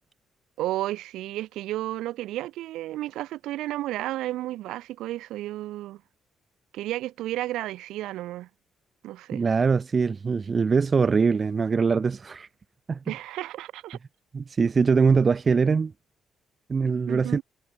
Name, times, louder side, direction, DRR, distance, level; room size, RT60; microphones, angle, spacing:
voice 1, 0.6-6.0 6.7-8.5 9.0-9.4 13.1-14.0 17.1-17.4, right 15 dB, 90° right, 5.2 m, -32 dB
voice 2, 9.3-12.5 12.9-13.0 14.3-15.9 16.7-17.4, right 5 dB, 35° right, 2.0 m, -22 dB
cardioid pair, 90°, 0 cm